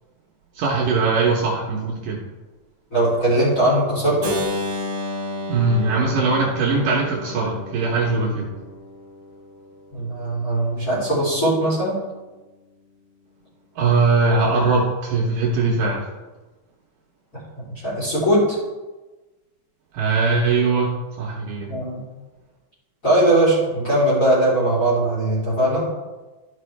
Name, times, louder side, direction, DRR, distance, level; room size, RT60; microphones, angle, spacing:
voice 1, 0.5-2.2 5.5-8.5 13.8-16.1 19.9-21.8, right 3 dB, 75° right, -2 dB, 2.2 m, -21 dB
voice 2, 2.9-4.4 9.9-12.0 17.6-18.6 21.7-22.0 23.0-25.9, right 1 dB, 20° left, -9 dB, 3.2 m, -20 dB
Keyboard (musical), 4.2-10.1, left 1 dB, 90° right, 1.0 m, -32 dB
12.5 x 5.4 x 3.3 m, 1.2 s
omnidirectional pair, 4.4 m